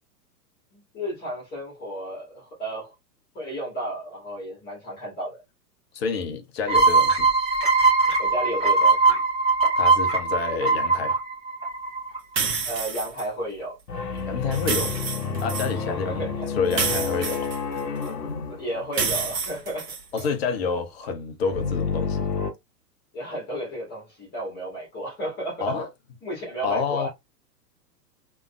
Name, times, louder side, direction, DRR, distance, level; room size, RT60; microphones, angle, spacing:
voice 1, 0.7-2.9 3.3-5.4 8.0-9.2 12.7-13.8 15.7-16.6 18.1-18.2 18.5-20.3 23.1-25.8 26.2-27.1, right 1 dB, 20° left, 1.7 m, -33 dB
voice 2, 5.9-7.3 9.8-11.2 14.3-14.9 15.4-17.5 20.1-22.3 25.6-25.9 26.6-27.1, left 5 dB, 40° left, 0.7 m, -28 dB
sound 1, 6.7-12.2, right 3 dB, 10° right, 1.2 m, -20 dB
sound 2, 12.4-13.2 14.5-15.7 16.7-18.1 18.9-20.3, right 5 dB, 75° right, 0.8 m, -28 dB
sound 3, 13.9-19.3 21.5-22.5, left 5 dB, 65° left, 0.9 m, -29 dB
3.5 x 3.0 x 2.2 m
figure-of-eight pair, 105°, 50 cm